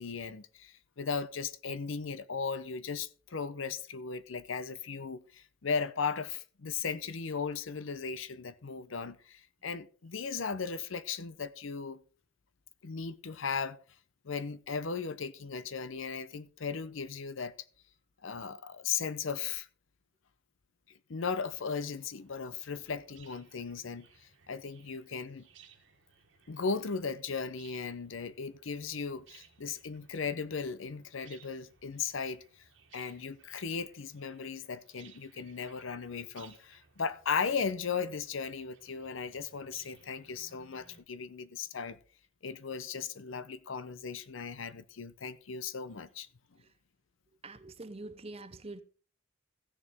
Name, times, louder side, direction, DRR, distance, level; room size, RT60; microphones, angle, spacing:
voice 1, 0.0-12.0 12.8-13.8 14.2-17.6 18.2-19.7 21.1-25.5 26.5-32.6 32.9-42.0 42.4-46.3, left 5 dB, 75° left, 0.7 m, -37 dB
sound 1, 21.2-41.0, right 6 dB, 70° right, 1.5 m, -62 dB
voice 2, 47.4-48.8, right 2 dB, 30° right, 0.7 m, -45 dB
15.5 x 6.8 x 3.5 m
head